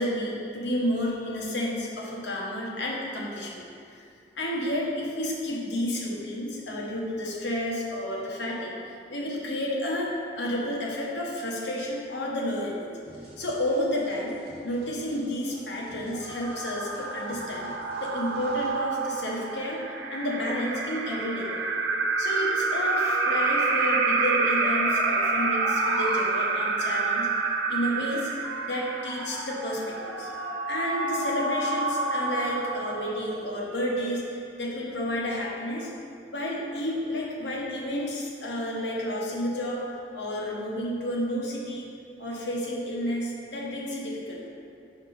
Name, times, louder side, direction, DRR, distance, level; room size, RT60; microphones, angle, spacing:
voice 1, 0.0-3.6 3.9-4.0 4.3-12.9 13.4-14.4 14.6-17.7 18.0-19.8 20.1-21.7 22.2-27.3 27.7-28.3 28.6-30.3 30.7-35.9 36.3-39.8 40.1-41.9 42.2-44.4, left 1 dB, 70° left, -3 dB, 1.2 m, -31 dB
sound 1, 13.1-18.7, equal, 60° right, 1.7 m, -51 dB
sound 2, 16.1-33.5, right 3 dB, 80° right, 0.6 m, -28 dB
sound 3, 21.0-26.2 28.4-34.3, right 1 dB, 5° right, 1.6 m, -42 dB
5.9 x 5.2 x 4.3 m, 2.4 s
head